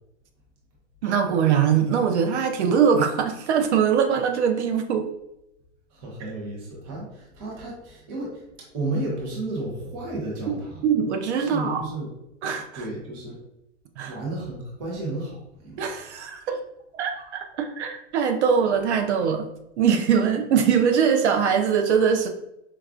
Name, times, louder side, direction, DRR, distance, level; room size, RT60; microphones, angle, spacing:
voice 1, 1.0-5.1 10.5-10.6 10.8-11.9 12.4-12.8 14.0-14.1 15.8-16.6 16.9-19.5 19.8-22.3, right 7 dB, 70° right, 6 dB, 0.5 m, -22 dB
voice 2, 5.9-8.4 8.7-10.9 11.4-12.1 12.7-13.4 14.0-15.9, right 2 dB, 20° right, -2 dB, 0.6 m, -32 dB
4.6 x 2.3 x 2.4 m, 0.84 s
supercardioid pair, 175°, 35 cm